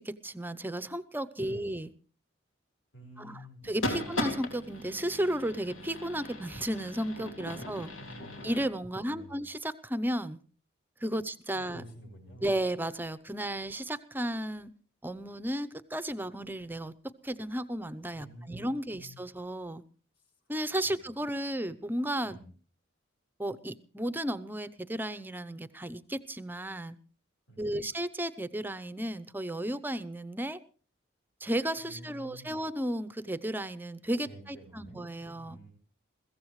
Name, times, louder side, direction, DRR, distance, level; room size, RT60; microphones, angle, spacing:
voice 1, 0.0-1.9 3.2-7.9 8.4-10.4 11.0-11.8 12.4-14.7 15.0-16.9 17.2-19.8 20.5-22.4 23.4-27.0 27.6-30.6 31.4-35.6, right 1 dB, 10° right, 15 dB, 0.7 m, -34 dB
voice 2, 2.9-3.6 3.9-4.1 7.5-7.7 8.0-8.5 8.9-9.4 11.1-11.2 11.5-12.5 18.1-19.2 20.2-20.3 20.8-21.0 22.2-22.5 27.5-27.8 31.8-32.6 34.3-35.1 35.3-35.7, equal, 65° left, 2 dB, 6.9 m, -50 dB
sound 1, 3.6-8.7, left 1 dB, 85° left, 3.5 m, -38 dB
22.0 x 16.0 x 3.2 m, 0.39 s
head